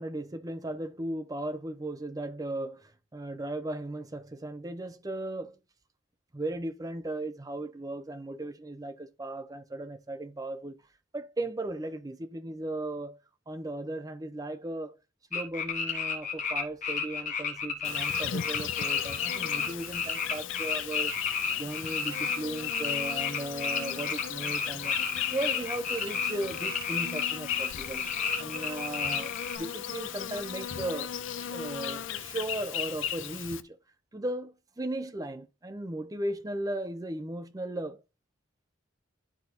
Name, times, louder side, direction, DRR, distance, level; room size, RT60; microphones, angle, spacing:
voice 1, 0.0-5.6 6.3-10.8 11.1-13.2 13.5-15.0 15.3-21.2 21.6-25.0 25.2-28.0 28.4-31.1 31.5-33.8 34.1-38.0, right 1 dB, 20° right, 0.5 m, -36 dB
sound 1, 15.3-29.6, left 6 dB, 40° left, 1.3 m, -32 dB
Insect, 17.8-33.6, left 9 dB, 85° left, 0.6 m, -36 dB
11.5 x 4.0 x 2.7 m
head